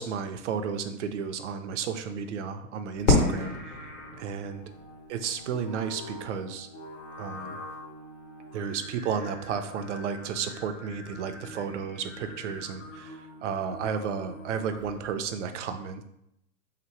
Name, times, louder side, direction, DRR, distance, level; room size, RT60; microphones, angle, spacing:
voice 1, 0.0-3.8 4.2-4.6 5.1-6.7 7.2-7.6 8.5-16.0, right 6 dB, 50° right, 8 dB, 0.5 m, -33 dB
Singing, 2.9-15.1, left 1 dB, 35° left, 0.9 m, -45 dB
Fireworks, 3.1-5.9, left 2 dB, 55° left, 1.3 m, -28 dB
3.5 x 2.9 x 4.5 m, 0.81 s
hypercardioid pair, 160°, 47 cm